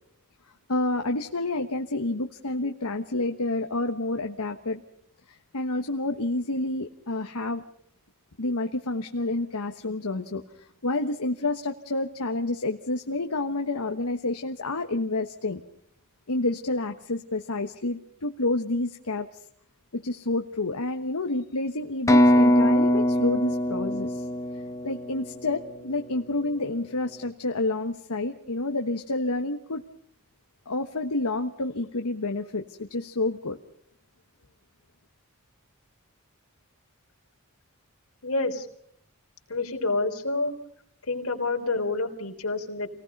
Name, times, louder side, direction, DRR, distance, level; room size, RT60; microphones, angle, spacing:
voice 1, 0.7-4.8 5.3-7.6 8.4-10.4 10.8-15.6 16.3-19.4 19.9-24.2 24.8-29.8 30.7-33.6, left 2 dB, 85° left, 5 dB, 1.3 m, -29 dB
sound 1, 22.1-25.9, equal, 15° left, 1.3 m, -22 dB
voice 2, 38.2-38.7 39.5-40.5 41.0-42.9, left 3 dB, 70° left, 4 dB, 3.7 m, -28 dB
29.0 x 19.0 x 5.4 m, 0.66 s
head